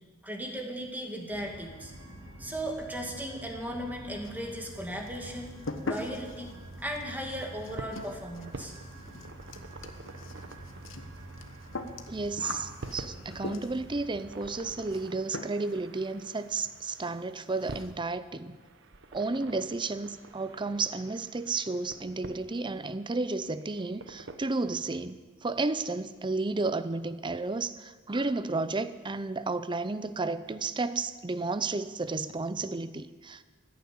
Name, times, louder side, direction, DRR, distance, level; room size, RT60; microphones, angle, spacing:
voice 1, 0.2-1.9 2.4-5.5 5.8-6.5 6.8-8.7, equal, 10° right, 1 dB, 2.2 m, -36 dB
sound 1, 1.3-15.1, right 1 dB, 90° right, 5.3 m, -47 dB
sound 2, 4.2-4.8 5.1-14.0 14.9-15.1 15.3-15.8 16.1-16.2 16.6-16.7 16.9-17.1 17.4-17.9, left 3 dB, 70° left, 1.2 m, -41 dB
sound 3, 7.0-24.4, right 2 dB, 65° right, 1.0 m, -48 dB
voice 2, 12.1-18.6 19.1-33.4, right 3 dB, 25° right, 14 dB, 0.6 m, -32 dB
15.0 x 10.5 x 8.7 m, 1.4 s
head